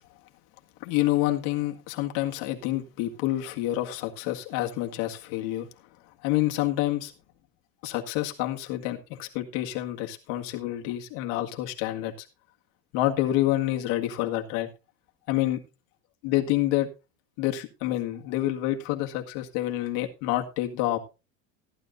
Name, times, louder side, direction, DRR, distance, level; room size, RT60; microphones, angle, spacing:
voice 1, 0.8-5.7 6.2-7.1 7.8-12.3 12.9-14.7 15.3-15.6 16.2-16.9 17.4-21.0, left 15 dB, 65° left, 1.9 m, -28 dB
15.0 x 11.0 x 2.6 m
supercardioid pair, 125°, 41 cm